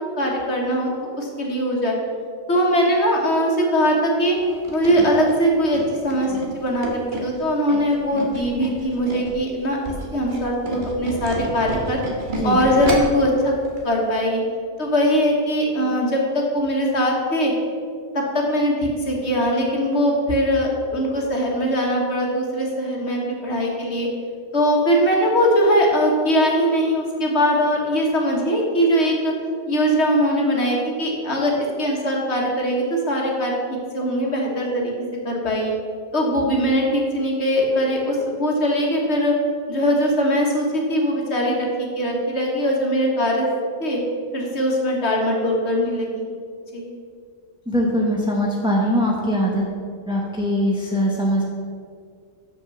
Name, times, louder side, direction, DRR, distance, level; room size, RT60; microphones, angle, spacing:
voice 1, 0.2-1.9 2.5-4.4 4.7-9.8 10.1-12.0 12.4-13.5 13.8-14.4 14.8-17.5 18.1-24.1 24.5-29.3 29.7-35.7 36.1-39.3 39.7-43.4 43.8-44.0 44.3-46.3 46.7-46.9, equal, 55° left, -1 dB, 1.7 m, -21 dB
Tools, 4.4-9.4 9.7-13.2 13.7-13.8 14.1-14.2, right 1 dB, 35° right, 1.4 m, -30 dB
voice 2, 47.7-49.6 50.1-51.4, equal, 5° right, -3 dB, 0.7 m, -21 dB
6.6 x 6.1 x 6.8 m, 2.2 s
omnidirectional pair, 1.4 m